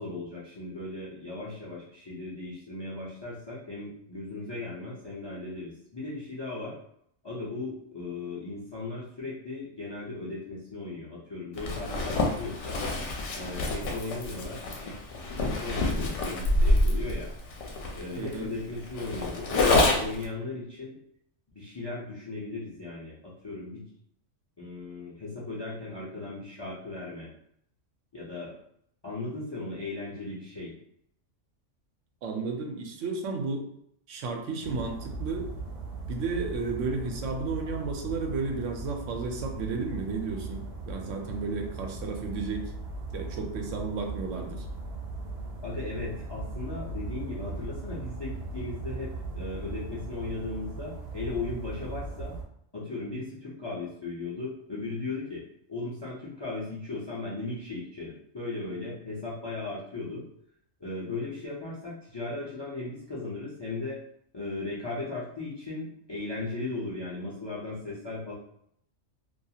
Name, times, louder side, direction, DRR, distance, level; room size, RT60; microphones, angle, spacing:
voice 1, 0.0-6.7 7.2-12.8 13.4-14.9 15.4-17.3 17.9-21.0 21.5-23.8 24.6-27.3 28.1-28.5 29.0-30.7 45.6-52.3 52.7-55.4 55.7-60.2 60.8-64.0 64.3-68.3, left 3 dB, 40° left, -6 dB, 0.4 m, -37 dB
Zipper (clothing), 11.6-20.3, left 2 dB, 75° left, 0.9 m, -27 dB
voice 2, 18.2-18.5 32.2-33.7 34.1-35.5 36.1-42.7 43.1-44.6, right 4 dB, 85° right, 3 dB, 0.9 m, -33 dB
sound 1, 34.6-52.4, right 2 dB, 65° right, 0.8 m, -38 dB
2.5 x 2.3 x 2.7 m, 0.71 s
omnidirectional pair, 1.3 m